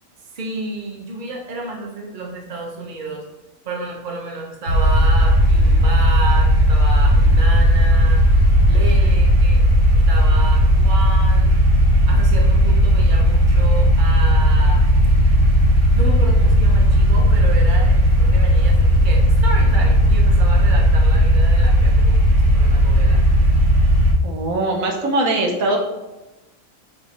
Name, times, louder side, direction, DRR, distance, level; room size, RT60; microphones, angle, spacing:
voice 1, 0.3-3.2 3.6-8.3 8.7-9.6 9.9-11.6 12.1-14.9 15.9-22.2 22.5-23.2, right 3 dB, 40° right, -1 dB, 0.9 m, -31 dB
sound 1, 4.7-24.1, equal, 60° right, 1.4 m, -15 dB
voice 2, 24.2-25.8, right 2 dB, 75° right, 1 dB, 1.1 m, -21 dB
4.9 x 3.3 x 2.9 m, 1.1 s
omnidirectional pair, 1.5 m